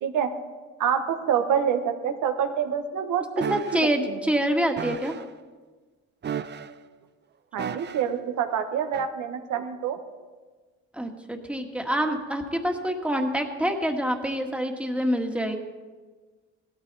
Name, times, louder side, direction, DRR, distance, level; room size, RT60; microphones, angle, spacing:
voice 1, 0.8-3.2 3.7-3.9 7.5-10.0, right 8 dB, 80° right, 6 dB, 1.3 m, -26 dB
sound 1, 3.4-3.9 4.8-5.3 6.2-6.9 7.6-8.2 8.9-9.1, right 8 dB, 35° right, 0.6 m, -33 dB
voice 2, 3.5-5.2 10.9-15.6, equal, 5° right, 3 dB, 1.7 m, -26 dB
17.0 x 13.0 x 4.1 m, 1.4 s
cardioid pair, 90°, 30 cm